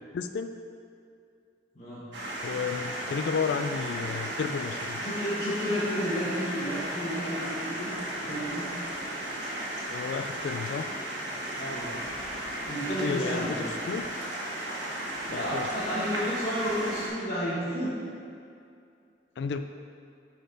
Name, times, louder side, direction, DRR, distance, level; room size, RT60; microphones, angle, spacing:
voice 1, 0.1-0.5 2.4-5.0 9.9-10.9 12.9-14.1 15.3-15.7 19.4-19.6, left 5 dB, 75° left, 8 dB, 0.3 m, -32 dB
sound 1, 2.1-17.1, right 1 dB, 80° right, 1.5 m, -35 dB
voice 2, 5.0-7.9 8.1-8.7 11.6-11.9 12.7-13.7 15.3-18.0, equal, 40° left, -12 dB, 1.6 m, -31 dB
10.0 x 4.4 x 3.9 m, 2.4 s
head